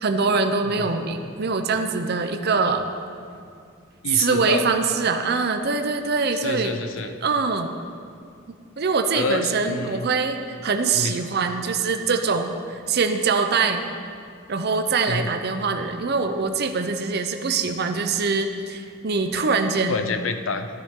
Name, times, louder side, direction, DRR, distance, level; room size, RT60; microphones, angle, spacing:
voice 1, 0.0-2.8 4.1-6.7 7.2-7.7 8.8-13.9 14.5-20.1, right 4 dB, 55° right, 6 dB, 0.7 m, -23 dB
voice 2, 4.0-4.7 6.4-7.2 9.1-10.1 10.9-11.2 15.1-15.3 19.9-20.7, left 4 dB, 75° left, 8 dB, 0.6 m, -28 dB
14.0 x 10.0 x 3.7 m, 2.3 s
head